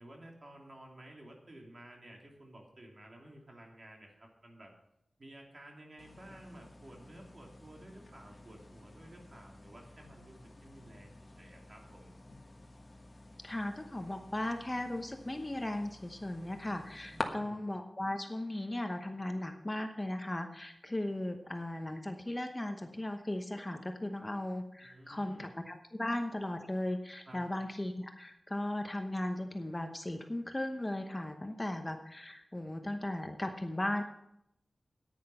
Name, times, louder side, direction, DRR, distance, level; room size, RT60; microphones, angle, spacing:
voice 1, 0.0-4.7 5.2-12.1 17.1-17.6 24.8-25.5 27.3-27.4, right 1 dB, 45° right, 0 dB, 2.9 m, -53 dB
sound 1, 6.0-17.2, left 2 dB, 35° left, 1.4 m, -49 dB
voice 2, 13.4-34.0, left 1 dB, 20° left, 5 dB, 0.9 m, -37 dB
10.0 x 9.8 x 5.6 m, 0.80 s
wide cardioid pair, 85°, 0 cm